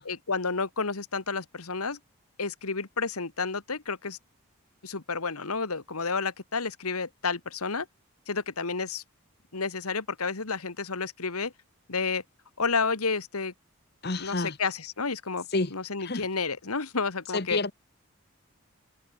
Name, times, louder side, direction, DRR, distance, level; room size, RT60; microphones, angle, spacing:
voice 1, 0.1-2.0 2.4-4.2 4.8-7.9 8.3-9.0 9.5-11.5 11.9-12.2 12.6-13.5 14.2-15.5 15.7-17.6, left 4 dB, 90° left, 1.8 m, -30 dB
voice 2, 14.0-14.6 15.5-15.7 16.0-16.3 17.3-17.7, left 3 dB, 45° left, 1.1 m, -29 dB
head